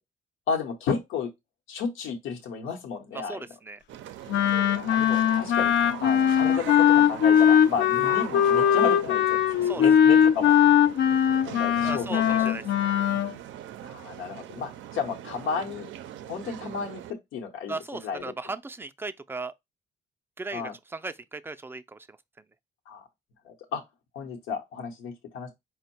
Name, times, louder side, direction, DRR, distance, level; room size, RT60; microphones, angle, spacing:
voice 1, 0.5-1.3 1.7-3.4 4.8-5.7 6.0-10.6 11.5-12.5 13.8-15.9 16.2-17.0 17.3-18.2 20.5-20.7 22.9-23.0 23.4-23.8 24.1-25.5, left 6 dB, 90° left, 0.9 m, -33 dB
voice 2, 3.1-3.8 9.6-10.2 11.8-12.6 17.7-19.5 20.4-22.2, right 3 dB, 10° right, 0.3 m, -37 dB
sound 1, 3.9-17.1, right 11 dB, 75° right, 0.4 m, -41 dB
Wind instrument woodwind instrument, 4.3-13.3, left 9 dB, 65° left, 0.4 m, -20 dB
4.4 x 2.1 x 4.1 m
cardioid pair, 90°, 20 cm